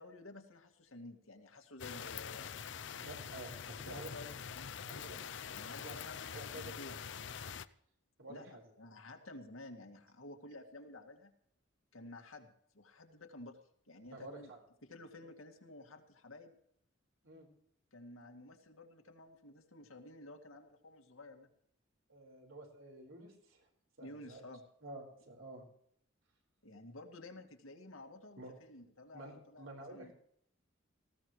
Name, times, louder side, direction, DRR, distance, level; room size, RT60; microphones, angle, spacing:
voice 1, 0.0-2.5 3.9-7.0 8.3-11.3 11.9-12.5 12.7-13.6 13.9-14.5 14.8-16.6 17.9-21.5 24.0-24.6 26.6-30.1, left 2 dB, 85° left, 4 dB, 2.1 m, -52 dB
sound 1, 1.8-7.7, left 7 dB, 60° left, 0.5 m, -45 dB
voice 2, 2.9-4.1 4.8-5.2 5.8-5.9 6.3-6.8 8.2-8.6 14.1-14.6 17.2-17.5 22.1-23.7 24.0-24.4 24.8-25.6 28.4-28.5 29.1-30.1, right 2 dB, 75° right, 1 dB, 4.7 m, -50 dB
19.0 x 16.0 x 3.2 m, 0.70 s
head